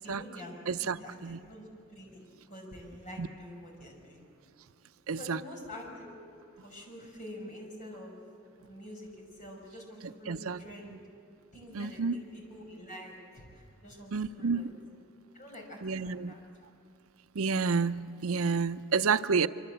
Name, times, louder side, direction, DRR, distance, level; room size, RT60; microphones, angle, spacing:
voice 1, 0.0-2.2 2.5-4.2 5.2-6.1 6.6-8.2 8.6-11.0 11.5-14.7 15.3-16.4, equal, 35° left, 0 dB, 5.9 m, -47 dB
voice 2, 0.7-1.4 3.2-3.3 5.1-5.4 10.3-10.6 11.7-12.2 14.1-14.7 15.8-16.3 17.4-19.5, right 5 dB, 85° right, 13 dB, 0.6 m, -29 dB
26.0 x 24.5 x 8.0 m, 2.5 s
head